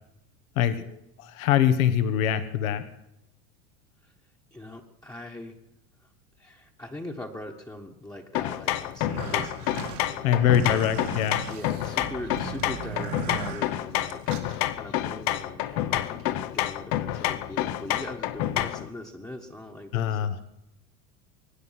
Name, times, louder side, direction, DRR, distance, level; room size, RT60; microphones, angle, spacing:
voice 1, 0.5-2.8 10.2-11.4 19.9-20.4, left 9 dB, 75° left, 11 dB, 1.5 m, -24 dB
voice 2, 4.5-5.6 6.0-6.1 6.4-10.8 11.5-20.4, left 1 dB, 10° left, -1 dB, 1.4 m, -41 dB
sound 1, 8.3-18.9, left 13 dB, 55° left, 0.9 m, -29 dB
sound 2, 8.9-14.6, right 7 dB, 80° right, 2.9 m, -38 dB
24.0 x 9.6 x 5.9 m, 0.85 s
hypercardioid pair, 95°, 42 cm